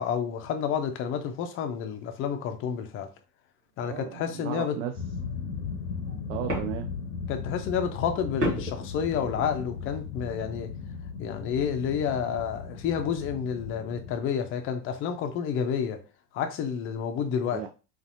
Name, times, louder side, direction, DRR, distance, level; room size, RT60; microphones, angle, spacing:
voice 1, 0.0-3.1 3.8-4.7 7.3-10.7 11.2-16.0 16.3-17.6, left 7 dB, 30° left, 0.6 m, -30 dB
voice 2, 3.8-5.0 6.3-6.9 17.4-17.7, right 10 dB, 50° right, 0.5 m, -35 dB
sound 1, 5.0-14.2, left 6 dB, 75° left, 0.8 m, -37 dB
sound 2, 5.2-5.3 5.9-7.1 8.4-9.6, right 1 dB, 90° right, 1.2 m, -33 dB
4.0 x 2.6 x 2.5 m
figure-of-eight pair, 90°, 46 cm